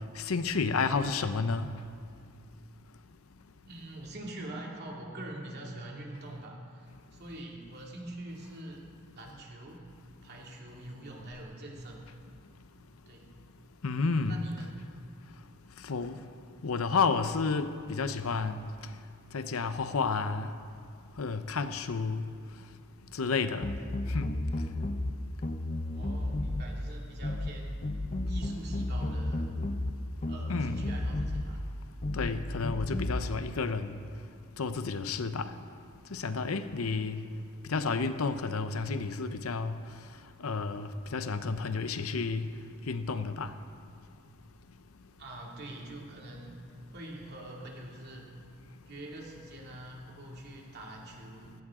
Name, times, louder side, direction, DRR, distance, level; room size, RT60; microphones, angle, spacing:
voice 1, 0.2-1.7 13.8-14.4 15.8-16.1 16.6-18.7 19.3-20.5 21.2-22.2 23.1-23.7 24.1-24.3 30.5-30.8 32.1-34.0 34.6-35.5 36.1-37.2 37.7-39.7 40.4-42.5 42.9-43.5, left 4 dB, 75° left, 10 dB, 0.7 m, -31 dB
voice 2, 3.6-8.8 9.1-9.9 10.2-12.0 13.1-13.3 14.3-14.8 25.9-27.8 28.3-29.5 30.3-31.6 33.1-33.4 45.2-46.6 46.9-48.2 48.9-51.5, right 1 dB, 50° right, -2 dB, 2.4 m, -44 dB
sound 1, 23.6-25.1 25.4-26.7 27.2-27.5 27.8-29.9 30.2-31.5 32.0-32.3 32.6-33.2, left 1 dB, 35° left, 0.7 m, -32 dB
17.0 x 16.0 x 3.7 m, 2.2 s
head